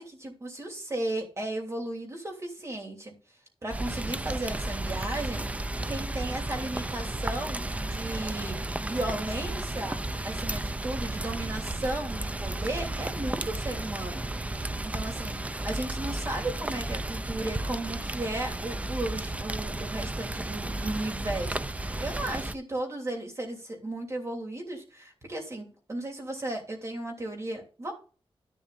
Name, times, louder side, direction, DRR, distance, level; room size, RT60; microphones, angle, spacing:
voice 1, 0.0-3.2 3.6-10.0 10.2-14.2 14.6-27.9, right 1 dB, 30° right, 1 dB, 3.2 m, -35 dB
Rain, 3.7-22.5, right 2 dB, 15° right, 0.4 m, -33 dB
11.0 x 11.0 x 2.6 m, 0.37 s
wide cardioid pair, 125°, 10 cm